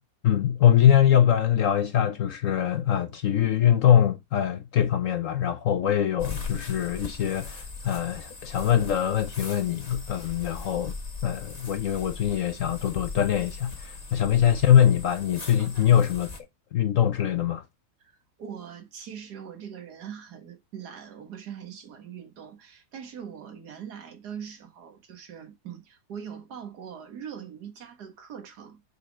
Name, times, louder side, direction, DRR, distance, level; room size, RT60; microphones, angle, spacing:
voice 1, 0.2-10.9 11.2-16.3 16.7-17.6, left 10 dB, 65° left, 0.8 m, -23 dB
sound 1, 6.2-16.4, left 4 dB, 25° left, 1.2 m, -39 dB
voice 2, 18.0-28.8, right 8 dB, 65° right, 2.0 m, -42 dB
6.6 x 4.2 x 5.0 m
omnidirectional pair, 1.9 m